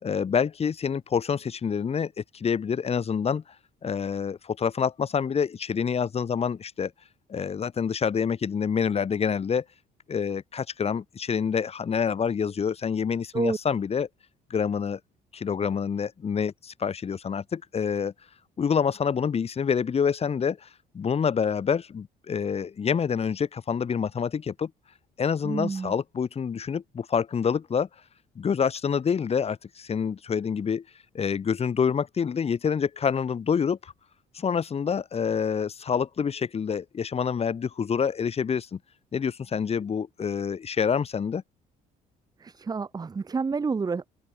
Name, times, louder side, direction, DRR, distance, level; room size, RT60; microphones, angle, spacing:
voice 1, 0.0-3.4 3.8-6.9 7.3-9.6 10.1-14.1 14.5-15.0 15.3-18.1 18.6-20.7 20.9-24.7 25.2-27.9 28.4-30.8 31.1-33.9 34.3-38.8 39.1-41.4, left 6 dB, 35° left, 3.9 m, -27 dB
voice 2, 25.4-25.9 42.4-44.1, right 5 dB, 25° right, 1.2 m, -29 dB
open air
cardioid pair, 110°, 17 cm